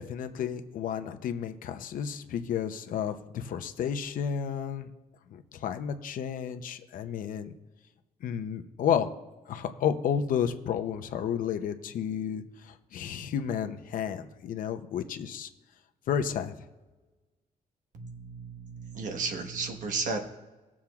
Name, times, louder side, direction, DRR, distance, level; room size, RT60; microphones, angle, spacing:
voice 1, 0.0-4.9 5.5-7.5 8.2-9.1 9.5-12.4 12.9-15.5 16.1-16.5, left 8 dB, 75° left, 8 dB, 0.7 m, -31 dB
voice 2, 17.9-20.2, right 4 dB, 65° right, 4 dB, 1.2 m, -34 dB
19.0 x 7.2 x 2.4 m, 1.2 s
wide cardioid pair, 165°, 14 cm